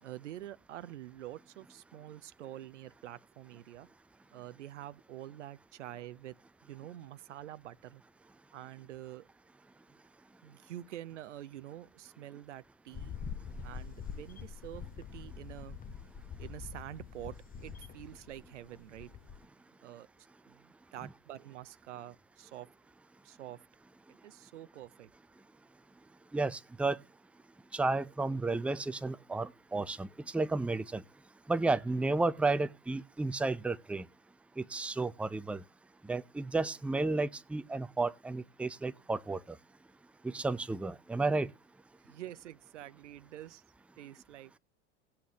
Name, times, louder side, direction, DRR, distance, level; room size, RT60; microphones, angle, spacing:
voice 1, 0.0-3.9 4.3-6.3 6.6-8.0 8.5-9.3 10.4-13.2 13.6-15.8 16.4-17.3 17.6-19.1 19.8-22.7 23.2-23.6 24.1-25.1 42.0-43.6 44.0-44.6, right 13 dB, 85° right, 0.7 m, -47 dB
sound 1, 12.9-19.4, left 6 dB, 25° left, 0.9 m, -45 dB
voice 2, 26.3-27.0 27.7-31.0 31.5-34.0 34.6-35.6 36.0-39.4 40.2-41.5, right 3 dB, 5° right, 0.5 m, -32 dB
18.0 x 8.6 x 2.9 m
hypercardioid pair, 85°, 35 cm